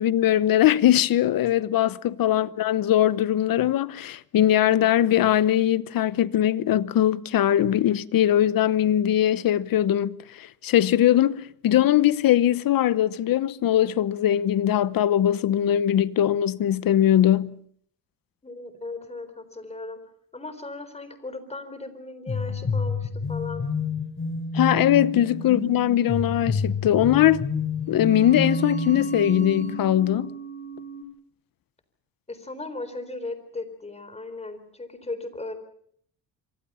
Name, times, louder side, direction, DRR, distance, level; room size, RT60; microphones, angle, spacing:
voice 1, 0.0-17.5 24.5-27.4 27.9-30.3, left 11 dB, 65° left, 0.9 m, -21 dB
voice 2, 18.4-20.0 20.3-23.6 32.3-35.5, left 2 dB, 15° left, 4.1 m, -37 dB
sound 1, 22.3-29.9, left 3 dB, 30° left, 3.3 m, -29 dB
sound 2, 27.8-31.0, right 6 dB, 20° right, 4.6 m, -36 dB
27.0 x 24.0 x 5.7 m
cardioid pair, 115°, 37 cm